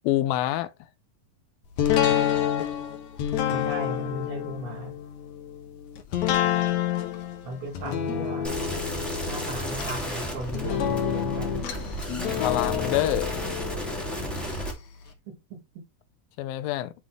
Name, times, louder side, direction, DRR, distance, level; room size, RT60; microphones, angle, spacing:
voice 1, 0.0-0.7 12.4-13.3 16.4-16.9, left 14 dB, 80° left, 2.4 m, -26 dB
sound 1, 1.8-14.7 15.1-15.2, left 10 dB, 65° left, 2.1 m, -28 dB
voice 2, 3.5-5.0 7.4-8.6 9.3-11.7 15.3-15.9, right 1 dB, 85° right, 4.1 m, -36 dB
sound 2, 8.4-14.7, equal, ahead, 1.5 m, -33 dB
9.9 x 3.7 x 3.3 m
omnidirectional pair, 4.1 m